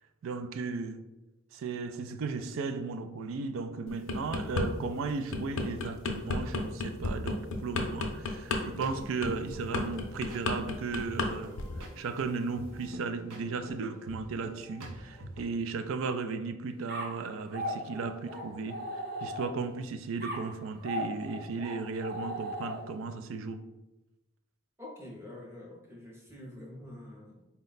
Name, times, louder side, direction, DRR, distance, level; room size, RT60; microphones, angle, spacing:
voice 1, 0.2-1.0 1.5-11.6 12.0-18.8 19.2-23.6, right 4 dB, 65° right, 9 dB, 0.3 m, -35 dB
sound 1, 3.9-4.7 5.1-11.3 11.6-11.9, left 3 dB, 65° left, 0.5 m, -31 dB
sound 2, 8.4-15.5, equal, 90° right, 0.8 m, -46 dB
sound 3, 16.9-19.7 20.2-23.1, equal, 45° right, 0.8 m, -38 dB
voice 2, 24.8-27.5, left 1 dB, 10° right, -2 dB, 0.7 m, -46 dB
4.1 x 2.2 x 3.9 m, 1.0 s
head